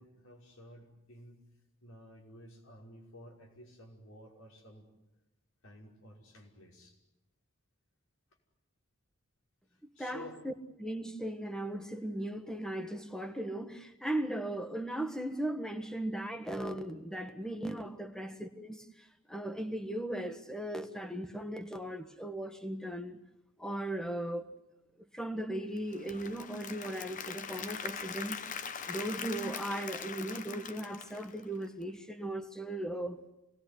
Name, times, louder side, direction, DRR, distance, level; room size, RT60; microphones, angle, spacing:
voice 1, 0.0-1.4 1.8-4.9 5.6-7.0 9.7-10.4, left 1 dB, 85° left, 5.6 m, -53 dB
voice 2, 10.0-10.5 10.8-23.2 23.6-24.5 25.1-33.2, right 1 dB, 5° left, 1.4 m, -37 dB
Applause / Crowd, 25.8-31.8, left 6 dB, 35° left, 0.9 m, -42 dB
26.5 x 19.5 x 10.0 m
head